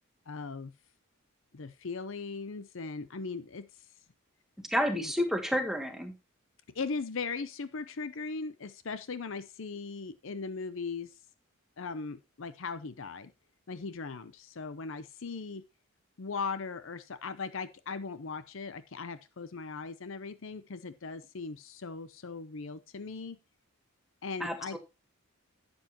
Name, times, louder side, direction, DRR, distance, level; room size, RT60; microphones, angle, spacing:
voice 1, 0.3-0.7 1.5-3.7 4.9-5.1 6.7-11.1 11.8-13.3 13.7-15.6 16.2-23.4 24.2-24.8, left 4 dB, 60° left, 14 dB, 0.6 m, -38 dB
voice 2, 4.6-6.1 24.4-24.8, equal, ahead, 5 dB, 1.2 m, -30 dB
11.5 x 8.0 x 2.9 m, 0.26 s
head